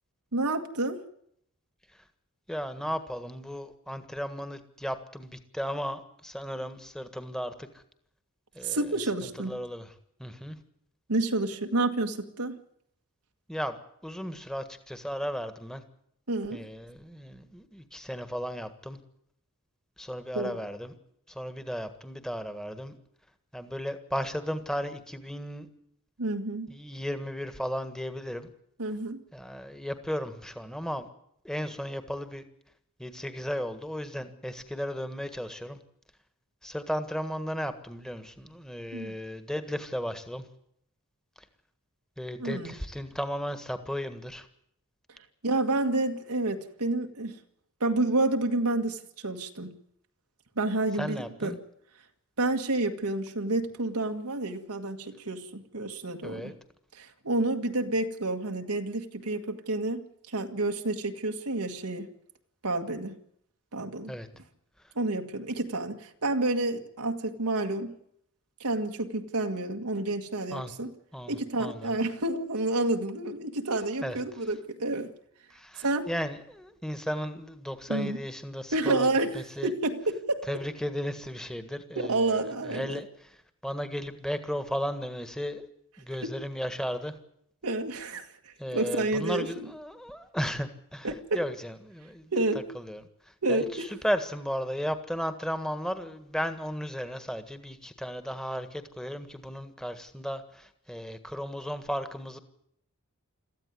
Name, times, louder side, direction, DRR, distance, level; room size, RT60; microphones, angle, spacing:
voice 1, 0.3-1.0 8.6-9.6 11.1-12.6 16.3-16.7 20.4-20.6 26.2-26.7 28.8-29.2 38.9-39.1 42.4-42.7 45.4-47.4 47.8-49.7 50.6-51.5 52.4-56.5 56.9-60.0 60.3-62.1 62.6-63.2 63.7-64.1 65.0-67.9 68.6-70.9 71.3-75.1 75.8-76.1 77.9-78.2 78.7-80.5 82.0-83.0 86.2-86.3 87.6-89.7 91.0-91.4 92.3-92.7 93.4-93.9, right 2 dB, 85° right, 4 dB, 1.8 m, -29 dB
voice 2, 2.5-7.8 8.5-9.9 10.2-10.6 13.5-15.8 16.5-19.0 20.0-20.9 21.3-23.0 23.5-25.7 26.7-28.5 29.3-31.1 31.4-32.4 33.0-35.8 36.6-40.4 42.2-44.5 51.0-51.6 56.2-56.5 64.1-64.3 70.5-70.7 71.1-72.0 74.0-74.2 75.5-79.1 79.3-79.7 80.5-85.7 86.0-87.1 88.6-92.3 92.7-102.4, equal, 5° left, 10 dB, 1.6 m, -35 dB
22.5 x 14.5 x 9.6 m, 0.73 s
head